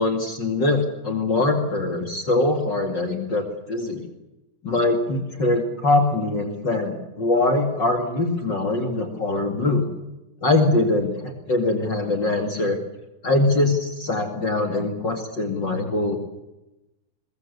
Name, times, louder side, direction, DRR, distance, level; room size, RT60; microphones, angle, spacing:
voice 1, 0.0-4.1 4.6-9.9 10.4-12.8 13.2-16.2, left 2 dB, 35° left, 5 dB, 2.7 m, -22 dB
22.0 x 22.0 x 8.3 m, 0.97 s
omnidirectional pair, 3.8 m